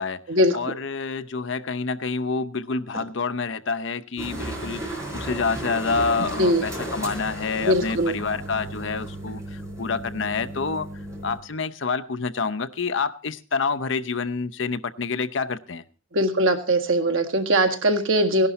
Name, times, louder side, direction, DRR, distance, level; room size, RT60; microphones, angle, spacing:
voice 1, 0.5-9.4 9.8-10.9 11.2-15.8, left 4 dB, 70° left, 11 dB, 0.7 m, -27 dB
sound 1, 4.2-11.4, right 1 dB, 15° right, 4.0 m, -34 dB
voice 2, 6.2-6.6 7.6-8.2 16.1-18.5, right 1 dB, 90° right, 4 dB, 1.8 m, -21 dB
17.0 x 11.5 x 4.1 m, 0.33 s
head